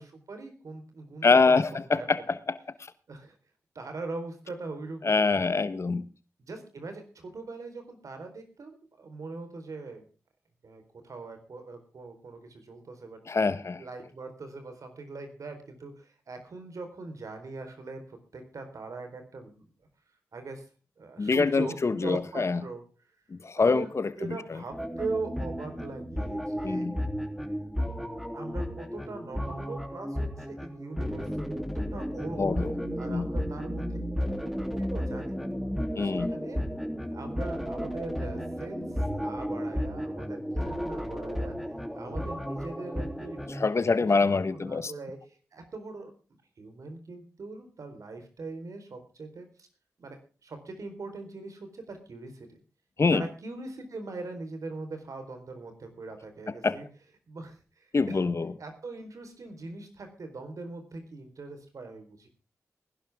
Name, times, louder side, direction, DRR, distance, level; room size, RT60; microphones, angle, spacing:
voice 1, 0.0-2.4 3.1-3.4 3.7-5.5 6.5-10.0 10.6-13.2 13.8-19.6 20.3-20.6 21.0-22.8 23.5-26.9 27.4-27.7 28.3-31.3 31.5-32.6 33.0-34.0 34.3-35.4 36.0-36.6 37.1-41.5 41.9-45.2 45.5-46.1 46.6-49.7 50.0-50.2 50.4-52.6 53.1-56.8 57.3-58.2 58.6-62.3, right 3 dB, 70° right, 6 dB, 4.3 m, -41 dB
voice 2, 1.2-2.6 5.0-6.0 13.3-13.8 21.2-22.6 23.3-24.4 26.6-27.0 32.4-32.7 33.1-33.3 36.0-36.3 43.5-44.9 53.0-53.2 56.6-56.8 57.9-58.5, left 4 dB, 55° left, 14 dB, 1.3 m, -25 dB
sound 1, 24.7-43.7, equal, ahead, 3.2 m, -33 dB
19.5 x 11.5 x 3.7 m, 0.35 s
cardioid pair, 50°, 6 cm